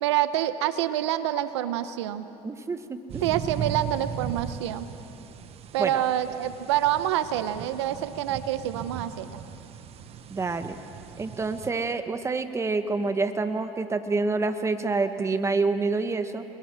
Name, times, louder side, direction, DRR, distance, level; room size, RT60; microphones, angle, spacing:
voice 1, 0.0-2.3 3.2-4.9 5.7-9.4, right 12 dB, 90° right, 12 dB, 0.9 m, -27 dB
voice 2, 2.4-3.2 5.8-6.0 10.3-10.7 11.2-16.4, right 3 dB, 20° right, 9 dB, 1.5 m, -27 dB
sound 1, 3.1-11.7, right 9 dB, 45° right, 1.2 m, -38 dB
30.0 x 21.0 x 6.4 m, 2.9 s
supercardioid pair, 95°, 14 cm